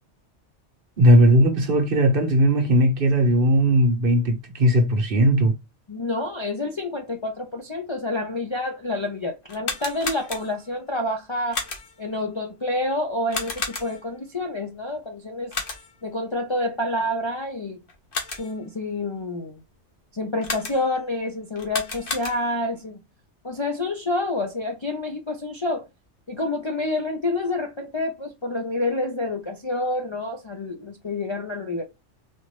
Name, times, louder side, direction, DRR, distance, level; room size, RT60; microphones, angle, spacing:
voice 1, 1.0-5.5, equal, 55° right, 1.0 m, -18 dB
voice 2, 5.9-11.6 12.0-15.5 16.0-17.8 18.4-19.6 20.1-23.0 23.4-25.9 26.3-31.8, left 2 dB, 35° left, 0.5 m, -28 dB
sound 1, 9.4-10.8 11.5-12.1 13.3-14.2 15.5-16.1 17.9-18.7 20.4-21.1 21.6-22.7, left 3 dB, 50° left, 1.1 m, -32 dB
4.1 x 2.4 x 3.2 m
omnidirectional pair, 1.2 m